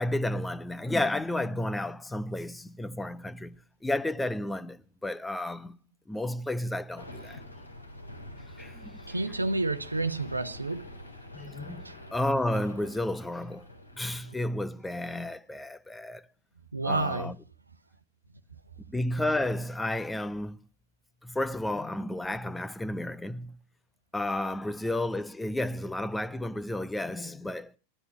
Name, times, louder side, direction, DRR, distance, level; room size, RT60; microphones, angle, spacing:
voice 1, 0.0-3.6 3.8-5.8 6.1-7.4 8.6-9.1 11.3-11.8 12.1-13.7 14.0-16.3 16.8-17.3 18.9-20.6 21.2-23.6 24.1-27.8, left 1 dB, 5° left, 0.9 m, -32 dB
sound 1, 7.0-14.5, left 1 dB, 85° left, 3.6 m, -46 dB
voice 2, 9.1-10.9 11.8-11.9 16.7-17.3, right 2 dB, 80° right, 1.0 m, -30 dB
17.0 x 13.0 x 6.0 m
figure-of-eight pair, 90°, 0 cm